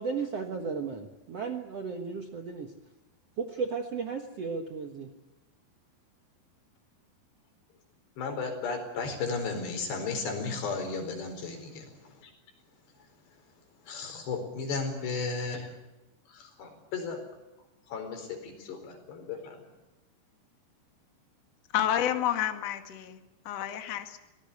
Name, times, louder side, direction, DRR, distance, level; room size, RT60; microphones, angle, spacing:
voice 1, 0.0-2.7 3.4-5.1, right 5 dB, 60° right, 5 dB, 1.7 m, -34 dB
voice 2, 8.2-12.3 13.9-15.7 16.3-17.2 17.9-19.6, left 4 dB, 80° left, 5 dB, 6.6 m, -34 dB
voice 3, 21.7-24.2, left 10 dB, 50° left, 6 dB, 2.3 m, -30 dB
24.5 x 18.5 x 8.4 m, 1.0 s
omnidirectional pair, 4.8 m